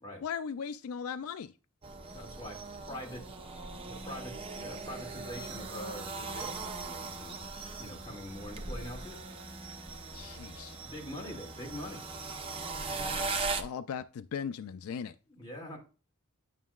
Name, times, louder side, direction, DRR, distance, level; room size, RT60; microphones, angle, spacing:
voice 1, 0.2-1.5 10.1-10.8 12.9-15.2, left 7 dB, 75° left, 0.3 m, -39 dB
sound 1, 1.8-13.6, right 3 dB, 25° right, 0.7 m, -39 dB
voice 2, 2.1-3.3 3.7-7.5 7.8-9.2 10.8-12.0 15.3-15.8, equal, 20° left, 2.3 m, -44 dB
9.2 x 6.1 x 2.3 m
head